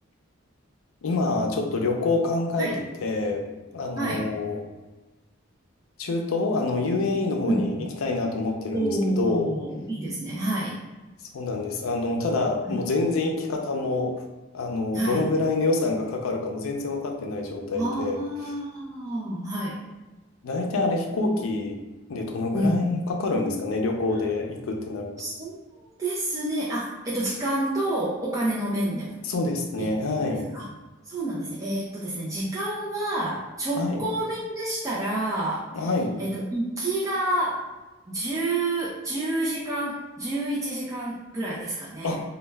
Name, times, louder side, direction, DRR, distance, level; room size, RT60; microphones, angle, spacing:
voice 1, 1.0-2.7 3.0-4.6 6.0-9.5 11.3-14.1 14.5-18.2 20.4-21.8 22.1-25.1 29.2-30.5 33.8-34.0 35.7-36.1 42.0-42.2, left 3 dB, 90° left, 2 dB, 0.4 m, -26 dB
voice 2, 4.0-4.3 7.4-7.9 8.7-10.8 12.6-12.8 14.9-15.3 17.7-19.8 22.5-23.0 25.2-29.2 29.8-30.0 30.2-30.7 31.0-35.9 36.2-37.7 38.1-42.2, right 1 dB, 15° right, -8 dB, 0.3 m, -29 dB
2.2 x 2.1 x 3.3 m, 1.2 s
head